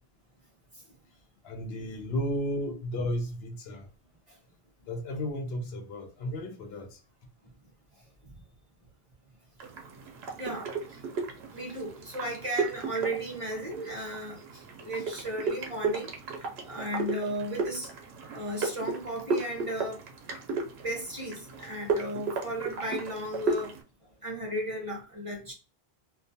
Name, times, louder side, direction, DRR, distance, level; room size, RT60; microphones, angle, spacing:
voice 1, 1.4-3.9 4.8-7.0, equal, 80° left, 0.8 m, -33 dB
sound 1, 9.6-23.8, right 4 dB, 85° right, 0.9 m, -35 dB
voice 2, 10.4-11.0 11.5-16.1 16.6-17.9 18.3-20.0 20.8-23.7 24.2-25.5, right 1 dB, 35° right, 0.7 m, -35 dB
2.4 x 2.2 x 2.6 m
omnidirectional pair, 1.0 m